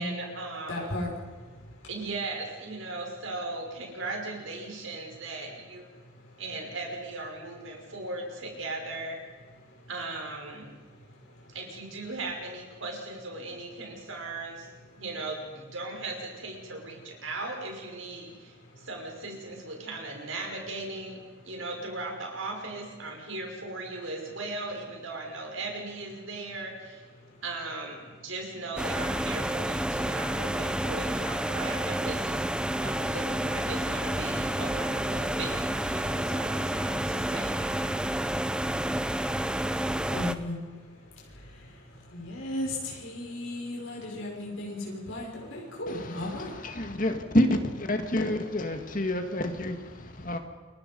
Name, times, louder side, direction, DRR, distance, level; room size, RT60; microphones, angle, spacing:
voice 1, 0.0-0.9 1.9-5.9 6.4-9.2 9.9-10.7 11.5-14.7 15.0-21.2 21.4-27.0 27.4-37.9, right 2 dB, 85° right, 5.8 m, -38 dB
voice 2, 0.7-1.7 6.0-6.4 9.7-9.9 10.9-11.5 18.7-18.9 27.2-27.4 38.8-46.7, left 1 dB, 80° left, 6.0 m, -37 dB
sound 1, 28.8-40.3, right 1 dB, 5° right, 0.6 m, -29 dB
voice 3, 45.9-50.4, left 1 dB, 40° left, 2.1 m, -28 dB
29.0 x 23.0 x 5.4 m
head